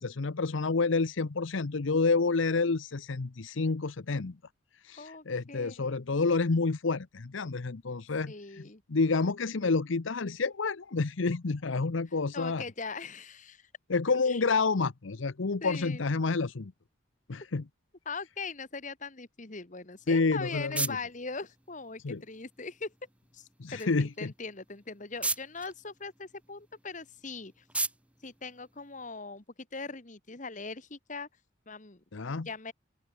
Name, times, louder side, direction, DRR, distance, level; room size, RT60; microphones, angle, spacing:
voice 1, 0.0-4.4 4.8-8.6 8.9-12.6 13.9-16.7 17.3-17.6 20.1-21.0 22.0-22.2 23.6-24.3 32.1-32.5, left 4 dB, 75° left, 0.8 m, -29 dB
voice 2, 5.0-6.0 8.3-8.8 12.3-13.7 14.2-14.4 15.6-16.0 18.0-22.9 23.3-27.6 28.2-29.4 29.7-31.3 31.7-32.0 32.4-32.7, left 4 dB, 40° left, 1.5 m, -41 dB
sound 1, 20.0-29.4, right 2 dB, 5° right, 1.4 m, -40 dB
open air
head